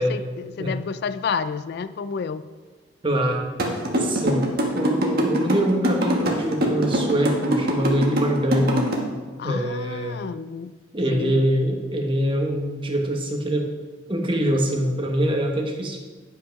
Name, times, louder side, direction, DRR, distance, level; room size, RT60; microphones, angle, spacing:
voice 1, 0.0-2.5 9.4-10.7 11.1-11.4, left 5 dB, 60° left, 13 dB, 0.3 m, -30 dB
voice 2, 3.0-3.5 4.0-4.4 4.7-8.9 9.4-10.2 10.9-13.7 14.1-16.0, equal, 25° right, 1 dB, 1.2 m, -24 dB
sound 1, 3.6-8.9, right 1 dB, 55° right, 1.4 m, -22 dB
9.7 x 5.8 x 5.2 m, 1.3 s
head